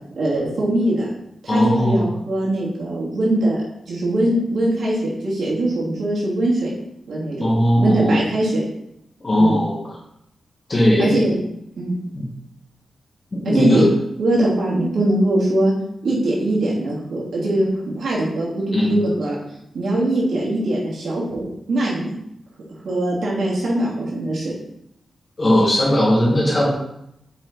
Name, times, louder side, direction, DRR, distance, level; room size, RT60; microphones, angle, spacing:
voice 1, 0.2-1.1 1.4-6.7 7.1-7.5 7.8-8.6 9.3-9.6 11.0-11.4 11.8-12.0 13.4-13.8 14.2-15.7 16.0-19.4 19.7-22.2 22.8-24.5, right 1 dB, 75° right, -6 dB, 3.0 m, -21 dB
voice 2, 1.5-2.0 7.4-8.1 9.2-9.8 10.7-11.3 12.1-12.2 13.3-13.8 18.7-19.0 25.4-26.7, left 1 dB, 30° left, -5 dB, 2.3 m, -18 dB
8.2 x 5.1 x 4.1 m, 0.79 s
wide cardioid pair, 140°, 0 cm